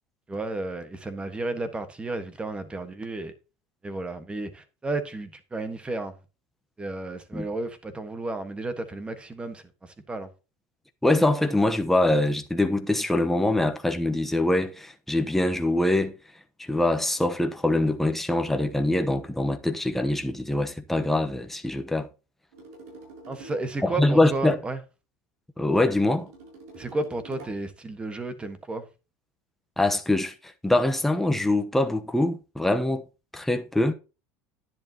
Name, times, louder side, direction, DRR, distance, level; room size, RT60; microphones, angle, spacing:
voice 1, 0.3-3.3 3.8-6.1 6.8-10.3 23.3-24.8 26.7-28.8, right 2 dB, 15° right, 1.4 m, -32 dB
voice 2, 11.0-16.1 16.6-22.1 23.8-24.6 25.6-26.3 29.8-30.3 30.6-33.0 33.3-33.9, left 1 dB, 5° left, 1.0 m, -24 dB
sound 1, 22.5-23.7 25.7-27.7, right 2 dB, 90° right, 7.0 m, -46 dB
10.5 x 10.5 x 2.9 m
supercardioid pair, 135°, 8 cm